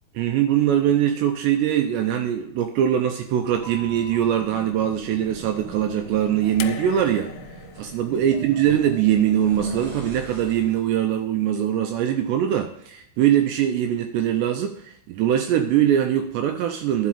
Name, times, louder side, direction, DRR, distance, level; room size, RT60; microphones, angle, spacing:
voice 1, 0.2-7.3 7.8-17.1, right 10 dB, 85° right, 5 dB, 2.5 m, -22 dB
sound 1, 3.4-10.9, right 3 dB, 50° right, 1.7 m, -39 dB
sound 2, 6.6-9.8 11.0-11.1, left 11 dB, 80° left, 2.7 m, -40 dB
11.0 x 5.2 x 7.2 m, 0.68 s
omnidirectional pair, 5.7 m